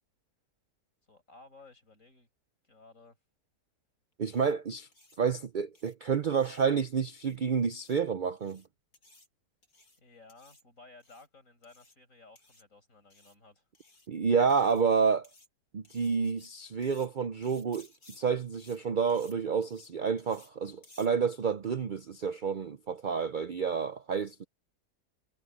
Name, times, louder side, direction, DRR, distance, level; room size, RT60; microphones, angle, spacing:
voice 1, 1.1-2.3 2.6-3.2 10.0-13.7, left 3 dB, 50° left, 7.1 m, -56 dB
voice 2, 4.2-4.9 5.2-8.6 14.1-15.3 15.7-17.9 18.1-24.4, right 6 dB, 70° right, 0.4 m, -29 dB
sound 1, 4.3-4.5 4.9-5.2 5.8-5.9 6.3-6.6 7.1-7.4 7.7-8.0 8.4-8.7 8.9-9.3 9.6-10.0 10.3-10.6 11.0-11.3 11.6-12.0 12.4-12.6 13.1-13.4 13.7-14.1 14.5-14.9 15.2-15.5 15.8-16.5 16.8-17.1 17.4-18.2 18.5-18.8 19.1-19.3 19.6-19.9 20.2-20.5 20.8-21.1, left 2 dB, 70° left, 7.0 m, -59 dB
omnidirectional pair, 1.7 m